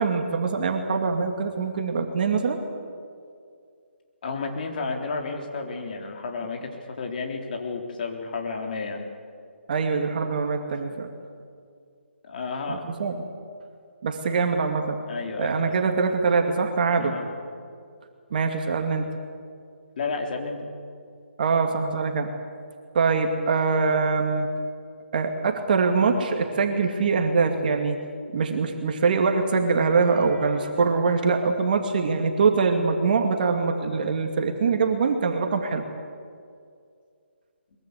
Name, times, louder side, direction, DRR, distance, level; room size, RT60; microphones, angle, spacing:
voice 1, 0.0-2.6 9.7-11.1 12.7-13.2 14.0-15.0 15.4-17.2 18.3-19.0 21.4-22.3 22.9-24.5 25.1-28.0 28.3-35.8, right 4 dB, 45° right, 4 dB, 2.3 m, -23 dB
voice 2, 4.2-9.0 12.2-12.9 14.3-14.4 15.1-15.9 16.9-17.3 20.0-20.7, left 4 dB, 45° left, 2 dB, 3.8 m, -32 dB
22.5 x 22.5 x 8.3 m, 2.2 s
hypercardioid pair, 160°, 7 cm